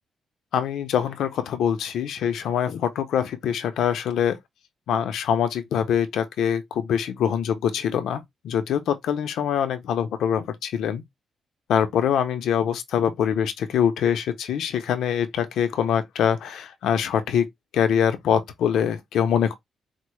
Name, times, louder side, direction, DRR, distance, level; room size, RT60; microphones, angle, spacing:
voice 1, 0.5-4.4 4.9-11.0 11.7-17.5 17.7-19.5, left 8 dB, 85° left, 0.6 m, -24 dB
4.4 x 2.1 x 3.1 m
cardioid pair, 145°, 0 cm